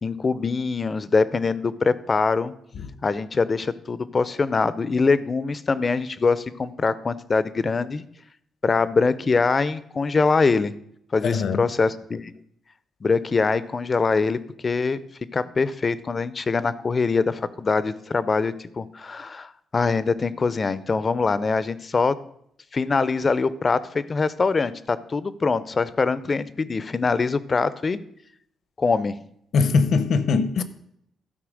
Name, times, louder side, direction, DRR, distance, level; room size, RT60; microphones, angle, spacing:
voice 1, 0.0-2.5 3.0-8.0 8.6-10.7 11.1-12.3 13.0-15.0 15.3-22.1 22.7-28.0 28.8-29.2, left 4 dB, 35° left, 0.5 m, -23 dB
voice 2, 11.2-11.6 29.5-30.6, left 5 dB, 65° left, 0.7 m, -21 dB
12.5 x 4.4 x 6.3 m
cardioid pair, 95°, 0 cm